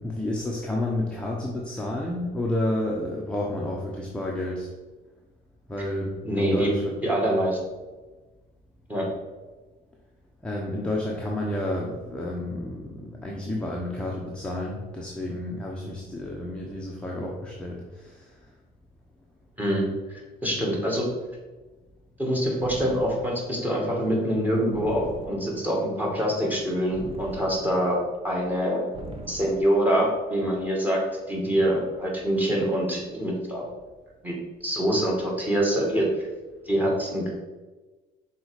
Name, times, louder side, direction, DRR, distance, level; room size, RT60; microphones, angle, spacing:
voice 1, 0.0-4.7 5.7-6.9 10.4-18.3, left 1 dB, 5° left, -3 dB, 1.0 m, -30 dB
voice 2, 6.2-6.7 7.0-7.6 8.9-9.1 19.6-19.8 20.1-21.1 22.2-28.0 28.2-28.8 29.3-33.6 34.2-34.3 34.6-36.3 36.7-37.3, equal, 10° right, -2 dB, 2.2 m, -25 dB
sound 1, 22.6-23.5 24.7-25.7 26.9-28.0 28.9-29.8, right 2 dB, 35° right, 1.1 m, -41 dB
6.2 x 4.1 x 4.9 m, 1.2 s
cardioid pair, 110°, 17 cm